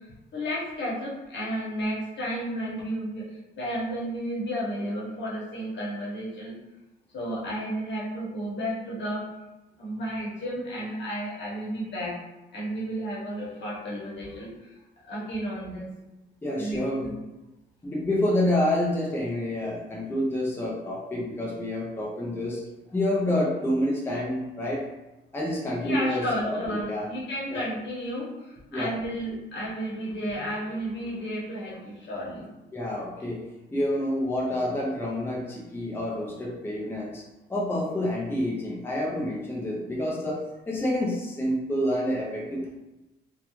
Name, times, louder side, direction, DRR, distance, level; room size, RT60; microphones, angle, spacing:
voice 1, 0.3-6.5 7.1-9.3 9.8-12.1 12.5-14.7 15.1-15.9 16.6-17.1 25.8-32.5, equal, 65° left, -5 dB, 1.0 m, -32 dB
voice 2, 16.4-17.1 17.8-22.6 22.9-24.8 25.3-27.1 27.5-27.7 28.7-28.9 32.7-33.4 33.7-37.2 37.5-42.8, left 1 dB, 10° left, -4 dB, 0.6 m, -28 dB
2.3 x 2.2 x 3.0 m, 1.0 s
cardioid pair, 90°, 20 cm